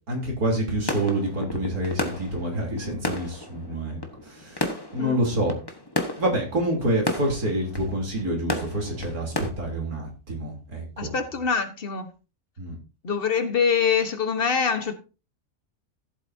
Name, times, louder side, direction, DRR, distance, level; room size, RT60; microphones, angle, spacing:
voice 1, 0.1-5.5 6.2-11.1 12.6-12.8, right 1 dB, 85° right, 3.8 m, -27 dB
sound 1, 0.9-9.5, left 1 dB, 20° left, 1.1 m, -33 dB
voice 2, 11.0-12.1 13.0-14.9, left 6 dB, 40° left, 1.4 m, -24 dB
14.5 x 8.0 x 2.7 m
omnidirectional pair, 1.5 m